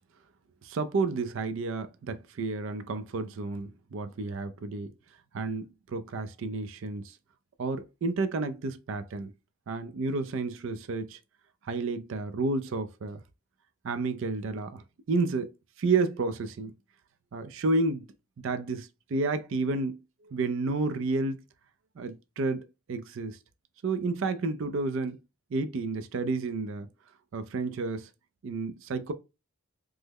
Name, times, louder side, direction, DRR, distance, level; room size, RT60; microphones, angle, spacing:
voice 1, 0.6-4.9 5.3-7.2 7.6-9.3 9.7-11.2 11.6-13.2 13.8-14.8 15.1-15.5 15.8-16.7 17.3-18.0 18.4-21.4 22.0-23.4 23.8-25.2 25.5-26.9 27.3-28.1 28.4-29.1, right 3 dB, 60° right, 0.4 m, -31 dB
3.2 x 2.0 x 3.5 m
head